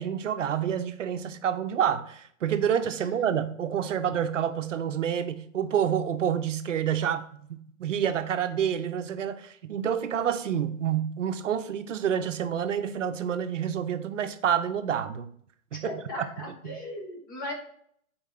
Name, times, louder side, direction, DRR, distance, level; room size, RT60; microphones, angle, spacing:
voice 1, 0.0-15.3 15.7-15.9 16.4-16.8, right 9 dB, 60° right, 9 dB, 0.8 m, -28 dB
voice 2, 15.8-17.5, left 1 dB, 15° left, 1 dB, 0.7 m, -37 dB
7.4 x 4.6 x 3.8 m, 0.63 s
hypercardioid pair, 170°, 43 cm